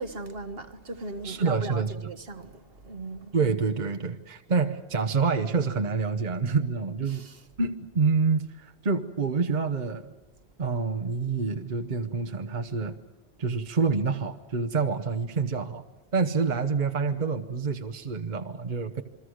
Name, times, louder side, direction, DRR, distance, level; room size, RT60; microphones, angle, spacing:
voice 1, 0.0-3.3 7.1-7.4, right 2 dB, 60° right, 1.6 m, -38 dB
voice 2, 1.2-1.9 3.3-7.2 7.6-10.1 10.6-13.0 13.4-15.8 16.1-19.0, right 4 dB, 45° right, 1.1 m, -27 dB
28.5 x 23.0 x 6.4 m
omnidirectional pair, 1.1 m